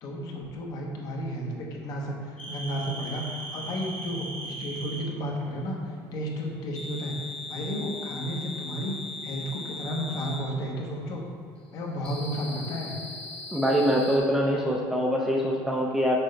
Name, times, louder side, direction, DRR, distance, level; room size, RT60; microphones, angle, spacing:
voice 1, 0.0-5.8 6.1-7.2 7.5-9.0 9.2-11.2 11.7-13.0, equal, 50° left, -1 dB, 1.0 m, -32 dB
sound 1, 2.4-5.1 6.7-10.5 12.0-14.2, left 1 dB, 15° left, 1.0 m, -39 dB
voice 2, 13.5-16.2, equal, 5° right, -2 dB, 0.4 m, -24 dB
6.2 x 5.4 x 3.2 m, 2.2 s
cardioid pair, 155°, 9 cm